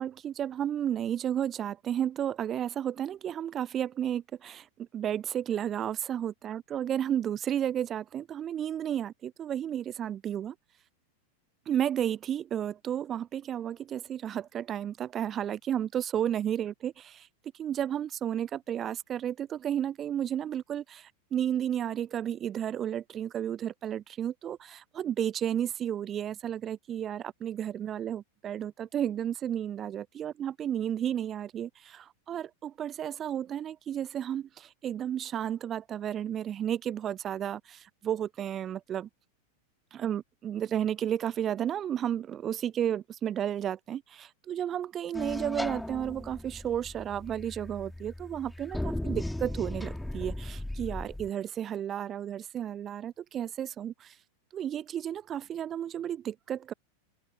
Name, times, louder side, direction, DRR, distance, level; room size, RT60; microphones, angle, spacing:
voice 1, 0.0-4.7 4.9-10.5 11.7-17.3 17.6-39.1 39.9-54.1 54.5-56.7, right 10 dB, 25° right, 0.5 m, -32 dB
sound 1, 45.1-51.3, left 1 dB, 5° left, 3.2 m, -37 dB
open air
figure-of-eight pair, 90°, 0 cm